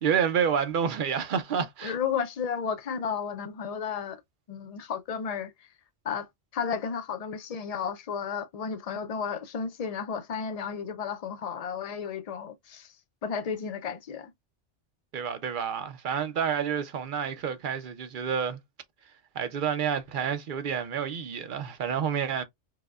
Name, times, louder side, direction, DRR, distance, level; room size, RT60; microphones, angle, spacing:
voice 1, 0.0-1.9 15.1-18.6 19.4-22.4, right 7 dB, 55° right, 0.6 m, -29 dB
voice 2, 1.8-4.2 4.5-5.7 6.0-6.3 6.5-12.9 13.2-14.3, left 6 dB, 80° left, 0.3 m, -33 dB
4.7 x 2.1 x 2.3 m
omnidirectional pair, 1.2 m